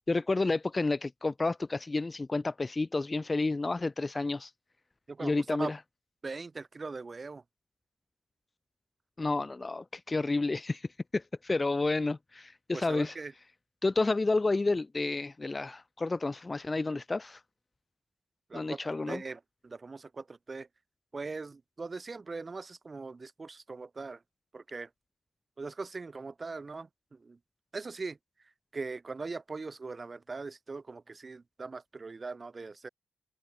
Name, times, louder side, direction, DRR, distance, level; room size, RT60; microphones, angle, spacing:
voice 1, 0.1-4.5 5.2-5.8 9.2-13.1 13.8-17.4 18.5-19.2, left 3 dB, 35° left, 0.8 m, -30 dB
voice 2, 6.2-7.4 12.7-13.3 18.5-20.7 21.1-24.2 24.5-24.9 25.6-27.4 27.7-28.2 28.7-32.9, right 4 dB, 45° right, 4.7 m, -40 dB
cardioid pair, 55°, 0 cm